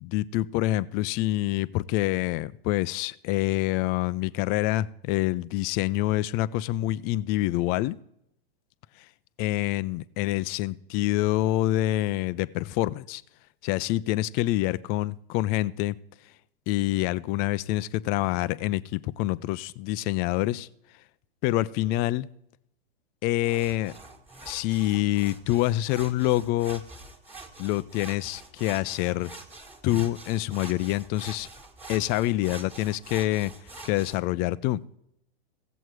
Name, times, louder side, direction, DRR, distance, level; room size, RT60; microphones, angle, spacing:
voice 1, 0.0-8.0 9.4-13.2 13.6-16.0 16.7-20.7 21.4-22.3 23.2-23.9 24.4-26.8 27.6-29.3 29.8-31.5 31.9-33.5 33.8-34.8, left 16 dB, 30° left, 18 dB, 0.4 m, -26 dB
sound 1, 23.4-34.2, right 2 dB, 5° right, 1.5 m, -45 dB
15.5 x 8.0 x 4.6 m, 0.77 s
hypercardioid pair, 115°, 30 cm